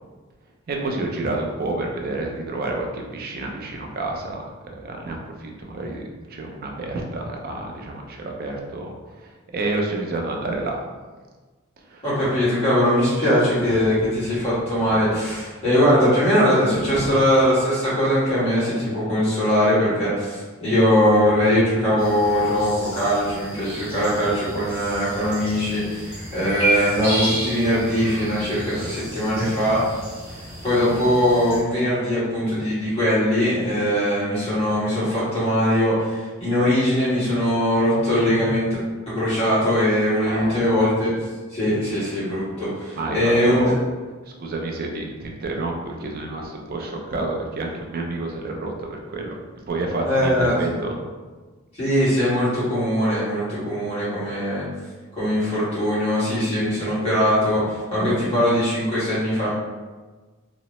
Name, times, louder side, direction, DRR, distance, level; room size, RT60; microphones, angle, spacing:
voice 1, 0.7-4.4 4.6-6.0 6.3-10.8 11.9-12.0 16.7-17.1 40.2-40.6 43.0-43.8 44.3-49.4 49.7-51.0, right 2 dB, 45° right, 1 dB, 0.4 m, -29 dB
voice 2, 12.0-29.8 30.6-38.7 39.1-41.1 41.5-43.7 50.0-50.5 51.7-54.6 55.1-59.5, equal, 30° left, -11 dB, 1.4 m, -21 dB
sound 1, 22.0-31.6, equal, 10° right, 1.0 m, -31 dB
2.9 x 2.1 x 3.0 m, 1.3 s
head